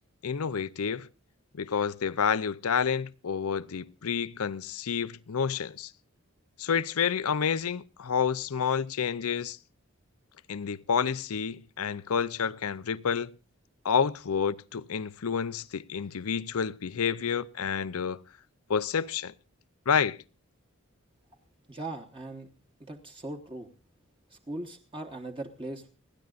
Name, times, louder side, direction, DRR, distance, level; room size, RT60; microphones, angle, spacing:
voice 1, 0.2-1.1 1.5-5.9 6.6-9.6 10.5-13.3 13.8-18.2 18.7-19.3 19.9-20.2, left 6 dB, 85° left, 0.6 m, -29 dB
voice 2, 21.7-22.5 22.8-23.7 24.3-25.9, right 2 dB, 25° right, 1.1 m, -39 dB
29.5 x 10.5 x 2.5 m
head